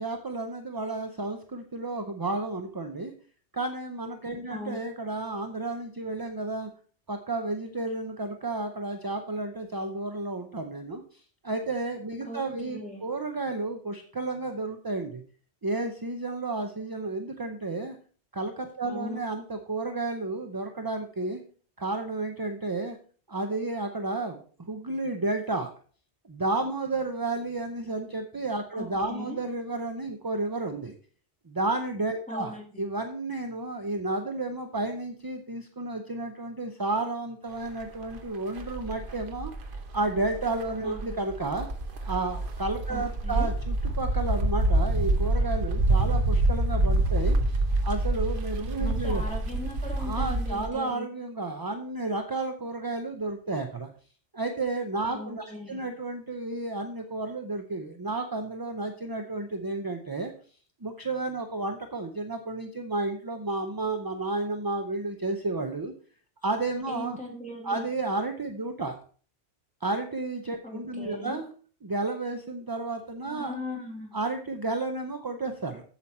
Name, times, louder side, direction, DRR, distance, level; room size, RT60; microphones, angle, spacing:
voice 1, 0.0-3.1 3.5-6.7 7.1-15.2 15.6-18.0 18.3-21.4 21.8-23.0 23.3-24.4 24.7-25.7 26.3-31.0 31.5-39.5 39.9-41.7 42.0-47.4 47.8-49.2 50.0-53.9 54.3-60.3 60.8-65.9 66.4-67.2 67.6-69.0 69.8-71.5 71.8-73.6 74.1-75.8, right 2 dB, 25° right, 5 dB, 0.5 m, -32 dB
voice 2, 4.5-4.8 12.2-13.1 18.8-19.2 28.7-29.4 32.3-32.8 40.8-41.0 42.9-43.5 48.7-51.1 55.1-55.9 66.9-67.9 70.6-71.4 73.4-74.1, left 1 dB, 5° left, -2 dB, 2.7 m, -39 dB
sound 1, 37.8-38.2 38.6-50.7, right 2 dB, 50° right, 1.1 m, -27 dB
8.1 x 7.4 x 4.3 m, 0.43 s
omnidirectional pair, 1.2 m